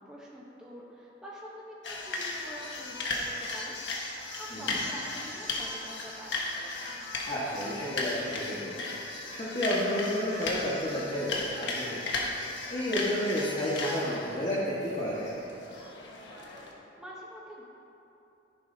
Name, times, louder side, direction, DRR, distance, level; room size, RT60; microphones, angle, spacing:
voice 1, 0.0-3.7 4.1-6.3 17.0-17.6, equal, 5° right, -6 dB, 1.0 m, -46 dB
sound 1, 1.8-16.7, left 2 dB, 70° left, 1.4 m, -36 dB
voice 2, 4.5-4.8 7.2-8.7 9.3-15.3, equal, 35° left, -9 dB, 1.6 m, -31 dB
13.5 x 11.0 x 2.8 m, 2.9 s
head